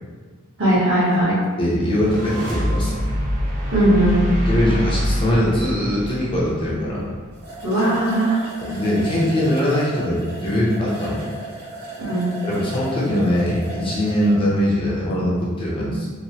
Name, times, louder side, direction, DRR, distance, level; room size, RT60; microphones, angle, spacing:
voice 1, 0.6-1.4 3.7-4.2 7.6-8.5 12.0-12.3 15.7-15.9, right 1 dB, 60° right, -9 dB, 1.2 m, -18 dB
voice 2, 1.6-3.0 4.4-7.0 8.6-11.2 12.4-16.1, equal, 25° left, -6 dB, 0.6 m, -21 dB
sound 1, 1.8-7.1, equal, 35° right, 0.5 m, -25 dB
sound 2, 7.0-7.1 7.3-14.4, right 1 dB, 85° right, 1.3 m, -35 dB
3.0 x 2.1 x 2.8 m, 1.5 s
head